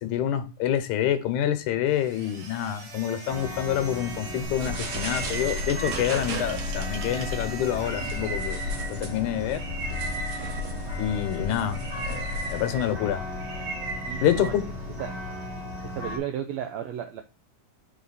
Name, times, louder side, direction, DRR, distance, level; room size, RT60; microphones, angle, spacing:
voice 1, 0.0-8.6 8.9-9.6 11.0-11.8 12.1-13.2 14.2-14.6, left 10 dB, 75° left, 2.2 m, -27 dB
sound 1, 1.9-9.2, right 4 dB, 50° right, 2.1 m, -42 dB
sound 2, 3.3-16.2, left 1 dB, 30° right, 1.5 m, -37 dB
sound 3, 4.4-15.1, equal, 75° right, 2.8 m, -34 dB
voice 2, 14.1-14.7 15.0-15.1 15.9-17.2, right 10 dB, 90° right, 1.5 m, -33 dB
5.8 x 4.1 x 3.9 m
omnidirectional pair, 3.7 m